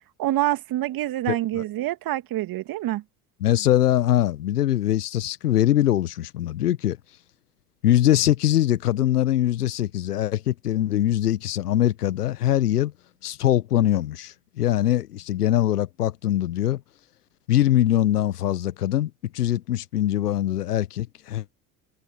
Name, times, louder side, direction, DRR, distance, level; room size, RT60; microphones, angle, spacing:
voice 1, 0.2-3.0, right 14 dB, 50° right, 2.3 m, -26 dB
voice 2, 3.4-7.0 7.8-12.9 13.2-16.8 17.5-21.4, left 12 dB, 80° left, 1.1 m, -22 dB
figure-of-eight pair, 65°, 45 cm